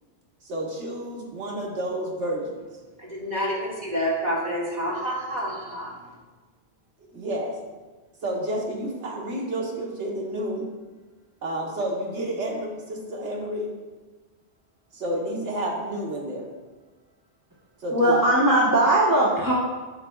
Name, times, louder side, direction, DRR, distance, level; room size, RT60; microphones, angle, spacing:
voice 1, 0.4-2.6 7.1-7.6 8.2-10.7 11.4-13.7 14.9-16.5 17.8-18.2, right 1 dB, 75° right, -1 dB, 1.5 m, -30 dB
voice 2, 3.1-5.9, equal, 35° right, -6 dB, 1.9 m, -28 dB
voice 3, 17.9-19.5, right 1 dB, 20° right, -7 dB, 0.9 m, -19 dB
9.4 x 5.8 x 2.3 m, 1.3 s
omnidirectional pair, 1.2 m